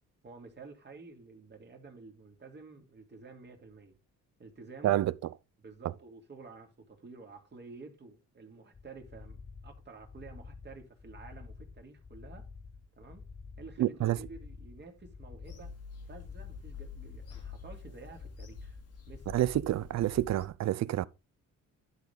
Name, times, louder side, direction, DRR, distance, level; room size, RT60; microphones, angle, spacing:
voice 1, 0.2-4.0 4.4-5.0 5.6-12.5 13.0-13.2 13.6-15.7 16.1-18.8 19.1-19.3, right 4 dB, 35° right, 2.5 m, -50 dB
voice 2, 4.8-5.1 13.8-14.2 19.3-21.1, right 13 dB, 60° right, 0.6 m, -28 dB
sound 1, 8.7-20.4, left 4 dB, 20° left, 0.6 m, -49 dB
Bird vocalization bird call bird song / Telephone, 15.4-20.5, left 5 dB, 55° left, 1.9 m, -48 dB
11.0 x 4.0 x 5.2 m
cardioid pair, 90°, 30 cm